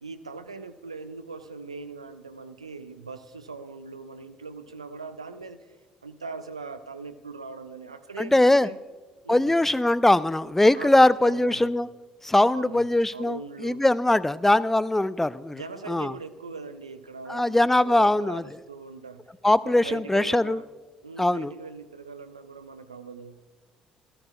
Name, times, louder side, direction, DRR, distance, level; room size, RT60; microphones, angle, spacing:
voice 1, 0.0-5.8 6.0-8.8 9.2-9.5 10.8-11.7 12.5-13.8 15.5-19.3 19.6-20.6 21.0-23.4, right 4 dB, 85° right, 8 dB, 0.6 m, -41 dB
voice 2, 8.2-8.7 9.3-11.9 12.2-15.6 15.9-16.1 17.3-18.4 19.4-20.6 21.2-21.5, left 1 dB, 10° left, 18 dB, 0.4 m, -21 dB
18.0 x 13.5 x 2.3 m, 1.3 s
figure-of-eight pair, 50°, 3 cm